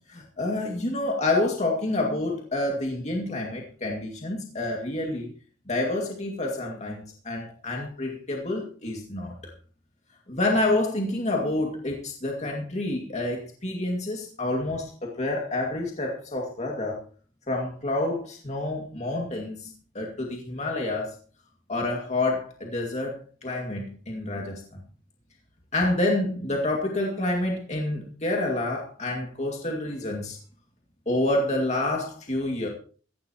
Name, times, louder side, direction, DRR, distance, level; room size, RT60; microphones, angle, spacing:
voice 1, 0.1-5.3 5.7-9.4 10.3-17.0 17.5-21.2 21.7-24.6 25.7-30.4 31.1-32.7, left 2 dB, 35° left, 0 dB, 2.3 m, -28 dB
17.0 x 14.5 x 3.0 m, 0.40 s
head